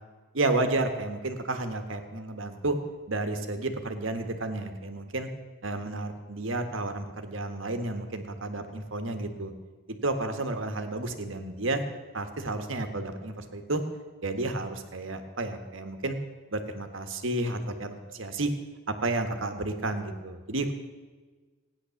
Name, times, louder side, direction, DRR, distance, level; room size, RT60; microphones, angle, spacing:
voice 1, 0.3-2.8 3.1-5.3 5.6-9.5 9.9-11.8 12.1-13.8 14.2-16.2 16.5-18.5 18.9-20.7, right 2 dB, 70° right, 7 dB, 1.5 m, -31 dB
15.5 x 10.0 x 7.1 m, 1.3 s
head